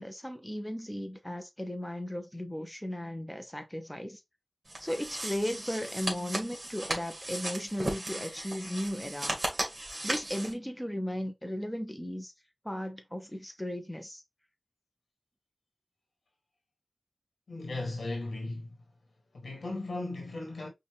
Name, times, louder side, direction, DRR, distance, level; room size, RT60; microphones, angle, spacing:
voice 1, 0.0-4.2 4.8-9.4 10.0-12.3 12.6-14.2, equal, 10° left, 0.9 m, -36 dB
sound 1, 4.7-10.5, right 1 dB, 35° right, 2.1 m, -36 dB
voice 2, 17.5-18.8 19.3-20.7, left 2 dB, 90° left, 1.8 m, -36 dB
5.3 x 2.5 x 3.4 m
wide cardioid pair, 50°, 0 cm